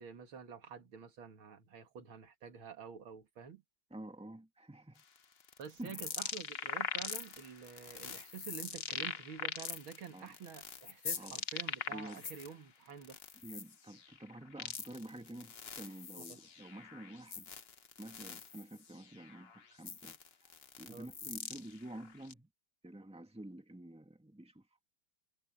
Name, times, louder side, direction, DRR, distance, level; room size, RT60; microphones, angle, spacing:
voice 1, 0.0-3.6 5.6-13.2 20.9-21.1, right 6 dB, 85° right, 2.8 m, -49 dB
voice 2, 3.9-5.0 5.8-6.1 10.1-10.3 11.1-11.4 11.9-12.2 13.4-17.5 18.0-22.5 22.8-24.7, right 1 dB, 5° right, 2.0 m, -49 dB
sound 1, 5.0-12.5 12.9-22.3, left 6 dB, 40° left, 1.0 m, -43 dB
omnidirectional pair, 2.2 m